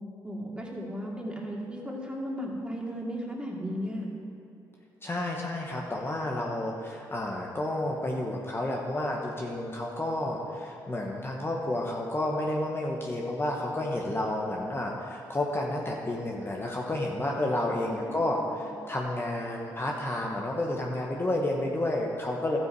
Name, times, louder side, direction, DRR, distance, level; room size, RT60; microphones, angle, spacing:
voice 1, 0.2-4.1 17.8-18.6, equal, 10° right, -2 dB, 2.6 m, -36 dB
voice 2, 5.0-22.6, left 1 dB, 25° left, -1 dB, 1.3 m, -31 dB
12.5 x 7.9 x 4.8 m, 2.8 s
supercardioid pair, 55°, 9 cm